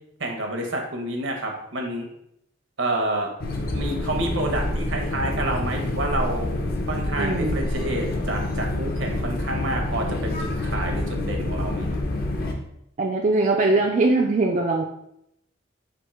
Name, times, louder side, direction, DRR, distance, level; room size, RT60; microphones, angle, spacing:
voice 1, 0.2-2.1 2.8-3.3 3.7-6.5 6.9-12.0 13.7-13.8, right 1 dB, 70° right, 2 dB, 0.8 m, -29 dB
sound 1, 3.4-12.5, left 1 dB, 50° left, 0.5 m, -27 dB
voice 2, 7.2-7.6 13.0-14.8, right 2 dB, 35° right, 0 dB, 0.3 m, -21 dB
3.6 x 2.6 x 4.3 m, 0.78 s
head